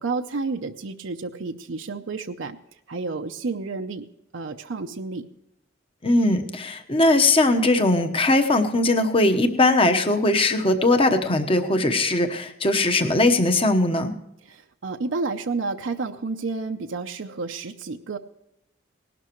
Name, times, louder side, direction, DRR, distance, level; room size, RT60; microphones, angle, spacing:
voice 1, 0.0-2.6 2.9-4.1 4.3-5.3 14.5-18.2, right 3 dB, 70° right, 5 dB, 0.7 m, -30 dB
voice 2, 6.0-14.1, left 2 dB, 30° left, 7 dB, 1.0 m, -20 dB
19.0 x 12.0 x 3.0 m, 0.80 s
head